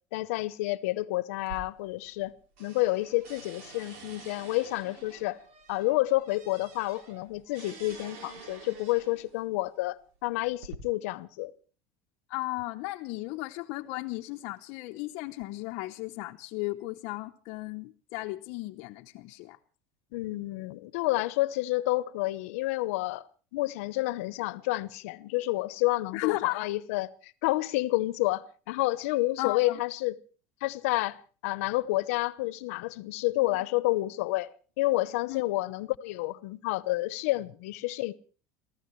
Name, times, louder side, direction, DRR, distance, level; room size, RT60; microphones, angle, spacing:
voice 1, 0.1-2.3 2.6-5.4 5.7-11.5 20.1-23.2 23.5-30.2 30.6-34.5 34.8-38.1, left 19 dB, 80° left, 0.9 m, -29 dB
sound 1, 1.4-2.3 2.6-9.4 10.1-10.8, right 4 dB, 70° right, 3.3 m, -48 dB
voice 2, 12.3-19.6 26.1-26.7 29.4-29.8 35.3-35.4, left 20 dB, 50° left, 0.8 m, -35 dB
29.5 x 15.0 x 3.2 m
cardioid pair, 175°, 7 cm